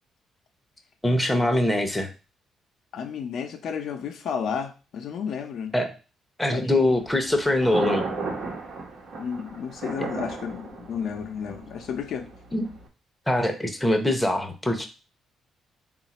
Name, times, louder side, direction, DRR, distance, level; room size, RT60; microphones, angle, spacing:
voice 1, 1.0-2.1 5.7-5.9 6.4-8.0 12.5-12.7 13.3-14.9, left 1 dB, 5° left, 4 dB, 0.8 m, -23 dB
voice 2, 2.9-5.7 6.5-6.7 9.2-12.3, left 7 dB, 70° left, 4 dB, 0.6 m, -32 dB
Thunder, 6.8-12.9, right 3 dB, 70° right, 1.1 m, -35 dB
3.8 x 2.5 x 4.1 m, 0.33 s
cardioid pair, 90°, 0 cm